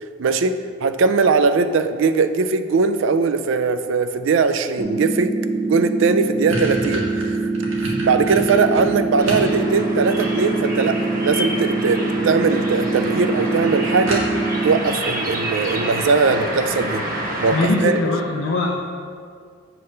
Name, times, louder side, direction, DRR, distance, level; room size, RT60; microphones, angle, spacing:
voice 1, 0.2-7.4 7.8-14.2 14.6-17.0 17.4-18.0, right 4 dB, 65° right, 10 dB, 0.4 m, -20 dB
sound 1, 4.8-14.8, right 3 dB, 5° right, 0.6 m, -24 dB
sound 2, 5.6-5.7 6.0-9.5 9.9-10.8 11.9-12.3 12.6-12.7 13.1-13.2 13.5-13.6 14.1-14.6, right 1 dB, 85° right, 1.4 m, -30 dB
sound 3, 9.2-17.7, right 1 dB, 45° right, 1.1 m, -28 dB
voice 2, 17.5-18.8, left 2 dB, 65° left, -2 dB, 0.5 m, -21 dB
7.6 x 3.2 x 5.5 m, 2.1 s
head